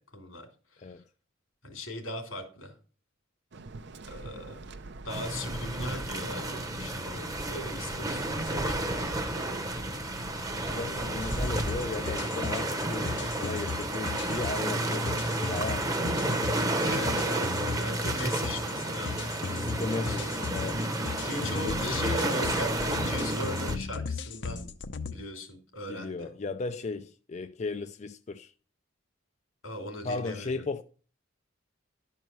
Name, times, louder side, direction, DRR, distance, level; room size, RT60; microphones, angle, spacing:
voice 1, 0.1-1.0 1.6-2.7 4.1-4.6 5.0-9.8 10.9-11.1 16.8-20.5 21.2-24.6 25.1-26.3 29.6-30.5, left 1 dB, 85° left, 2.8 m, -39 dB
Waves surf, 3.5-11.1, right 2 dB, 55° right, 0.7 m, -46 dB
sound 1, 5.1-23.8, right 1 dB, 15° right, 0.9 m, -31 dB
voice 2, 10.7-16.2 19.7-20.8 21.2-22.0 25.9-28.5 30.0-30.8, left 3 dB, 35° left, 0.4 m, -36 dB
sound 2, 11.2-25.1, left 5 dB, 60° left, 0.7 m, -37 dB
12.0 x 4.6 x 6.7 m
head